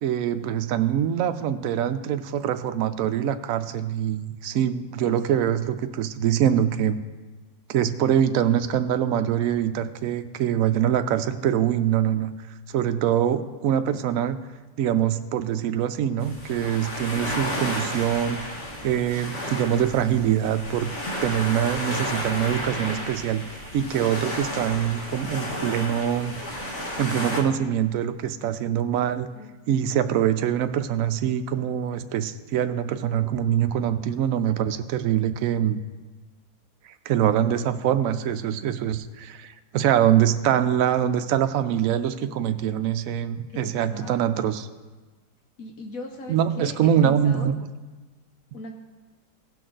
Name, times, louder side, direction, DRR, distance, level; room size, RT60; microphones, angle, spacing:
voice 1, 0.0-7.0 7.7-12.3 12.7-14.4 14.8-18.5 18.8-20.9 21.2-26.4 27.0-29.3 29.7-35.8 36.8-44.7 46.3-47.5, right 10 dB, 70° right, 10 dB, 0.9 m, -24 dB
voice 2, 5.0-5.4 21.3-21.7 29.3-29.5 43.5-44.2 45.6-46.8 47.0-47.5 48.5-48.7, left 2 dB, 65° left, 3 dB, 1.2 m, -39 dB
sound 1, 16.2-27.4, left 1 dB, 50° left, 1.8 m, -32 dB
17.0 x 6.2 x 3.9 m, 1.3 s
omnidirectional pair, 1.6 m